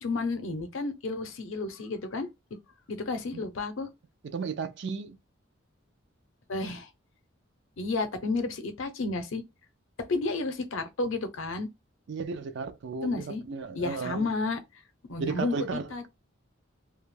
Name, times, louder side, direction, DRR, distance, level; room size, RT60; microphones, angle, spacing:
voice 1, 0.0-2.3 2.9-3.9 6.5-6.9 7.8-9.4 10.1-11.7 13.0-13.4 13.7-14.6 15.1-15.6 15.9-16.1, left 3 dB, 80° left, 0.6 m, -31 dB
voice 2, 4.3-5.2 12.1-14.3 15.2-16.1, right 5 dB, 60° right, 0.4 m, -34 dB
2.3 x 2.1 x 3.1 m
head